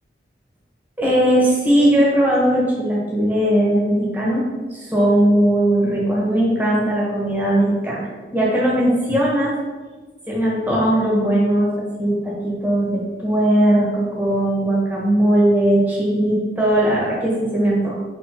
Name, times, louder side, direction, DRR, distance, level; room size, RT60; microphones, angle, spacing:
voice 1, 1.0-4.4 4.7-9.6 10.3-17.9, right 1 dB, 10° right, -5 dB, 1.4 m, -18 dB
4.9 x 4.3 x 4.5 m, 1.3 s
head